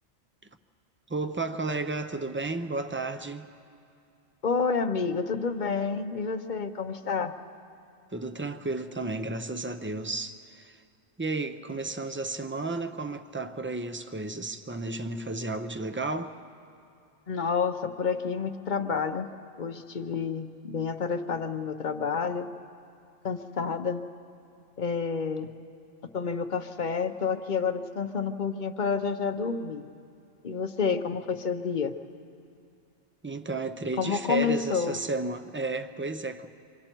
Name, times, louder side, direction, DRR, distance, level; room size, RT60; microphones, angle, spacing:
voice 1, 1.1-3.5 8.1-10.8 11.2-16.3 33.2-36.5, right 3 dB, 15° right, 0.5 m, -33 dB
voice 2, 4.4-7.3 17.3-19.3 19.6-22.5 23.2-24.0 24.8-25.5 26.1-29.9 30.4-31.9 34.0-35.0, left 5 dB, 45° left, 0.9 m, -29 dB
28.0 x 24.5 x 4.5 m
omnidirectional pair, 1.2 m